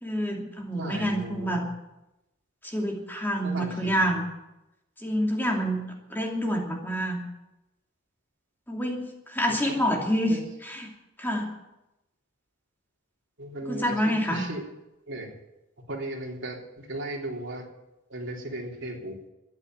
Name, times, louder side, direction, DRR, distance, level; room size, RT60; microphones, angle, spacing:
voice 1, 0.0-1.6 2.6-4.3 5.0-5.8 6.1-7.2 8.7-10.3 10.6-10.9 11.2-11.5 13.7-14.4, equal, 10° left, 0 dB, 2.6 m, -27 dB
voice 2, 0.8-1.7 3.4-4.2 9.5-10.0 10.3-10.5 13.4-14.6 15.1-15.3 15.9-17.7 18.1-19.2, right 1 dB, 65° right, -1 dB, 3.6 m, -37 dB
13.5 x 10.5 x 9.5 m, 0.93 s
head